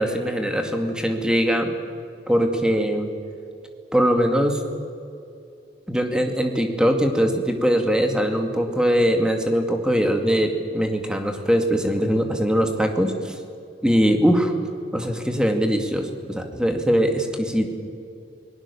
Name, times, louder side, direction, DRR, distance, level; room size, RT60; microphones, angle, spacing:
voice 1, 0.0-1.7 2.3-3.1 3.9-4.6 5.9-13.3 13.8-14.5 14.9-17.7, equal, 5° right, 4 dB, 2.2 m, -21 dB
28.0 x 19.5 x 7.1 m, 2.4 s
head